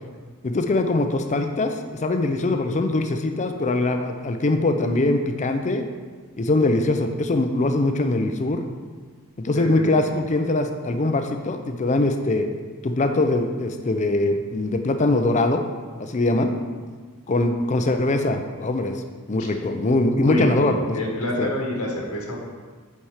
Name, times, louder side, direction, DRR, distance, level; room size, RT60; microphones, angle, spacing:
voice 1, 0.4-1.8 2.0-5.9 6.4-8.6 9.4-12.5 12.8-15.7 16.0-16.5 17.3-19.0 19.3-21.0 21.4-21.5, left 2 dB, 35° left, 6 dB, 0.5 m, -22 dB
voice 2, 2.7-3.2 9.5-9.9 16.3-16.5 19.4-19.5 20.2-22.4, left 1 dB, 85° left, -1 dB, 1.5 m, -28 dB
8.7 x 4.3 x 4.9 m, 1.5 s
head